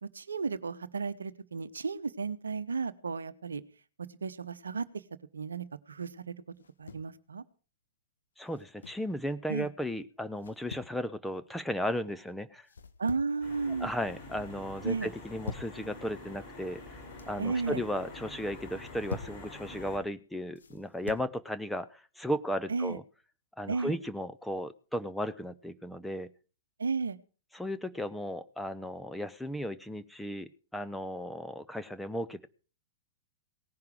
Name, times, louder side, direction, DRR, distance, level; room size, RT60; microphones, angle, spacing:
voice 1, 0.0-3.6 4.0-5.0 5.3-6.3 6.8-7.4 9.5-9.7 13.0-13.9 14.8-15.1 17.4-17.8 22.7-23.0 23.7-23.9 26.8-27.2, right 4 dB, 75° right, 14 dB, 0.9 m, -34 dB
sound 1, 6.6-7.1 8.5-9.1 10.4-11.0 12.7-13.4 13.8-14.3 15.1-15.8 16.8-17.4 18.7-19.4 20.6-21.3, left 5 dB, 70° left, 1.5 m, -44 dB
voice 2, 8.4-12.7 13.8-17.0 17.3-23.0 23.6-26.3 27.5-32.5, equal, 5° left, 10 dB, 0.7 m, -35 dB
sound 2, 13.4-20.0, left 2 dB, 35° left, 5.6 m, -47 dB
18.0 x 10.5 x 4.9 m, 0.37 s
figure-of-eight pair, 105°, 0 cm